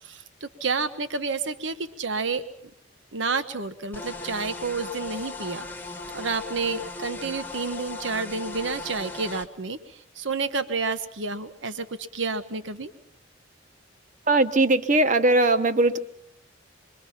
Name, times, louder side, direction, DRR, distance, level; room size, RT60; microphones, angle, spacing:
voice 1, 0.0-2.4 3.1-5.7 6.1-12.9, right 4 dB, 70° right, 10 dB, 1.1 m, -30 dB
sound 1, 3.9-9.5, left 3 dB, 10° left, 1.2 m, -37 dB
voice 2, 14.3-16.0, right 2 dB, 40° right, 10 dB, 1.1 m, -20 dB
26.5 x 22.0 x 5.8 m, 0.69 s
head